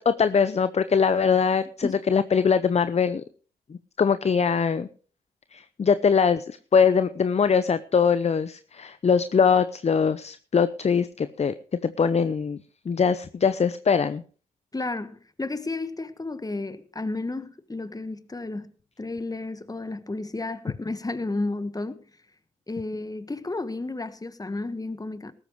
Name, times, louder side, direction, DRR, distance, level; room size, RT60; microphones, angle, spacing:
voice 1, 0.0-3.2 3.7-4.9 5.5-11.5 11.8-12.6 12.9-14.2, left 6 dB, 35° left, 0.7 m, -22 dB
voice 2, 14.7-18.7 19.0-22.0 22.7-25.3, left 2 dB, 20° left, 1.5 m, -32 dB
19.0 x 13.0 x 3.2 m
hypercardioid pair, 40°, 19 cm